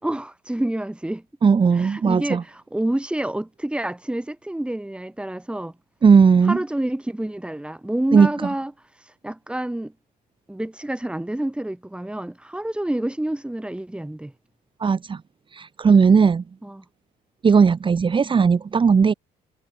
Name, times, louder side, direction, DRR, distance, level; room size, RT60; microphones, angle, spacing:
voice 1, 0.0-1.2 1.7-5.7 6.4-8.7 9.2-9.9 10.5-14.3 16.6-16.8, right 1 dB, 5° right, 4.7 m, -28 dB
voice 2, 1.4-2.4 6.0-6.6 8.1-8.3 14.8-15.2 15.5-16.4 17.4-19.1, right 5 dB, 30° right, 1.9 m, -16 dB
cardioid pair, 110°, 17 cm